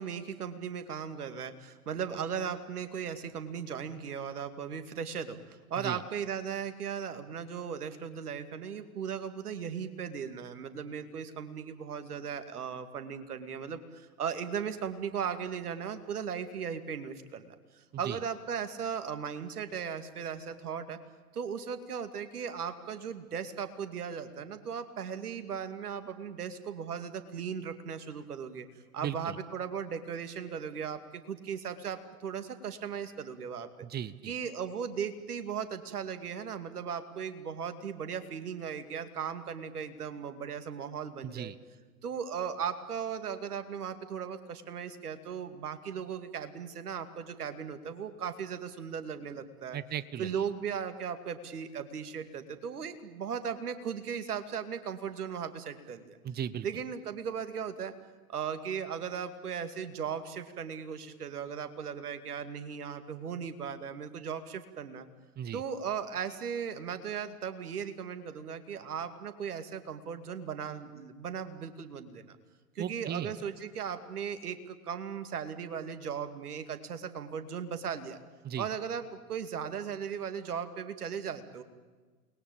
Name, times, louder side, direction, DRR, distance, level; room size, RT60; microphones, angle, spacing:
voice 1, 0.0-21.0 21.3-28.7 28.9-33.9 34.3-41.5 42.0-49.8 50.2-56.2 56.6-57.9 58.3-65.1 65.5-72.4 72.8-78.2 78.6-81.6, right 7 dB, 75° right, 9 dB, 2.6 m, -37 dB
voice 2, 29.0-29.4 33.8-34.3 41.2-41.6 49.7-50.4 56.2-56.7 65.4-65.6 72.8-73.3 78.4-78.7, right 10 dB, 20° right, 16 dB, 1.1 m, -36 dB
28.5 x 21.0 x 8.8 m, 1.4 s
hypercardioid pair, 105°, 46 cm